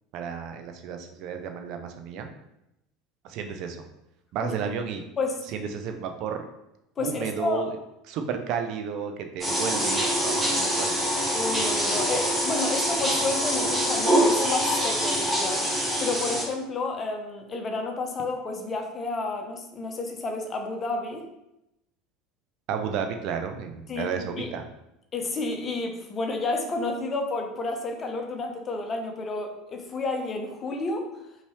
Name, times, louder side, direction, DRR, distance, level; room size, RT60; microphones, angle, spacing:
voice 1, 0.1-2.3 3.2-3.8 4.3-5.0 5.5-6.5 7.0-7.7 8.1-10.9 11.3-11.9 22.7-24.6, right 7 dB, 50° right, 6 dB, 0.5 m, -32 dB
voice 2, 7.0-7.7 11.3-15.7 16.0-21.3 23.9-24.1 24.4-24.5 25.1-31.1, left 3 dB, 30° left, 4 dB, 0.9 m, -30 dB
sound 1, 9.4-16.4, equal, 10° right, 1.6 m, -25 dB
5.3 x 3.0 x 3.0 m, 0.86 s
figure-of-eight pair, 70°, 0 cm